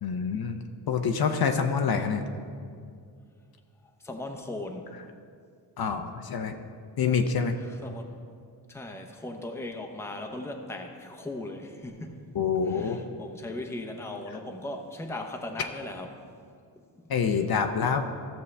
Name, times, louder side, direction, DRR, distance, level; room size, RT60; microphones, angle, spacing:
voice 1, 0.0-2.3 5.8-6.6 7.0-7.6 12.3-13.0 17.1-18.0, left 6 dB, 55° left, 6 dB, 0.7 m, -26 dB
voice 2, 4.0-4.9 7.6-8.1 8.7-12.2 12.7-16.1 16.8-17.1, left 2 dB, 5° left, 3 dB, 0.7 m, -38 dB
15.0 x 6.8 x 3.3 m, 2.2 s
wide cardioid pair, 130°, 44 cm